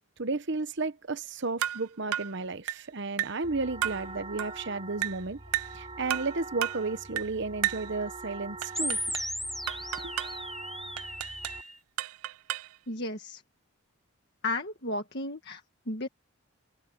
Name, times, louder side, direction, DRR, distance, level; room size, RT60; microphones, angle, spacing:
voice 1, 0.2-5.4 5.7-9.2 10.0-10.1, right 3 dB, 55° right, 1.0 m, -33 dB
sound 1, 1.6-1.8 2.1-2.3 2.7-2.9 3.2-3.4 3.8-4.0 4.4-4.6 5.0-5.2 5.5-5.8 6.1-6.3 6.6-6.8 7.2-7.3 7.6-7.9 8.6-9.3 9.7-10.4 11.0-11.6 12.0-12.8, right 12 dB, 80° right, 0.4 m, -33 dB
sound 2, 3.4-11.6, right 3 dB, 25° right, 4.7 m, -44 dB
sound 3, 8.7-11.7, equal, ahead, 0.5 m, -36 dB
voice 2, 12.9-13.4 14.4-15.6 15.9-16.1, left 2 dB, 50° left, 1.8 m, -33 dB
head